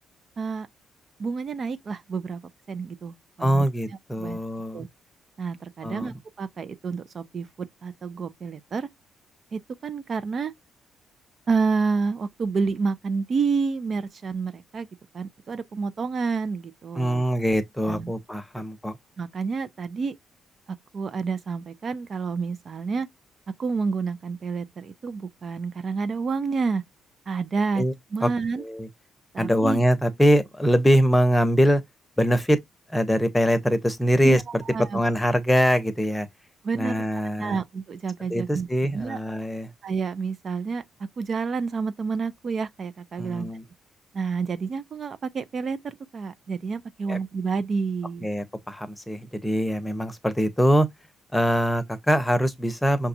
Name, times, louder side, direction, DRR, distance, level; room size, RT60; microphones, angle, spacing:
voice 1, 0.4-0.7 1.2-2.4 2.7-3.6 4.2-4.4 4.7-4.9 5.4-8.9 9.5-10.5 11.5-14.9 15.1-17.2 17.9-18.1 19.2-20.2 20.7-23.1 23.5-26.8 27.3-27.8 28.1-28.6 29.3-29.8 34.2-35.0 36.6-37.0 37.4-39.2 39.8-43.5 44.1-48.3, right 5 dB, 45° right, 0.5 m, -29 dB
voice 2, 3.4-4.8 5.8-6.1 16.9-19.0 27.8-27.9 28.2-28.3 28.6-28.9 29.4-31.8 32.2-32.6 32.9-34.6 34.9-36.3 36.7-37.6 38.3-39.7 43.2-43.6 47.1-47.2 48.2-50.9 51.3-53.1, equal, 10° left, 0.9 m, -23 dB
5.8 x 2.3 x 2.7 m
cardioid pair, 90°, 0 cm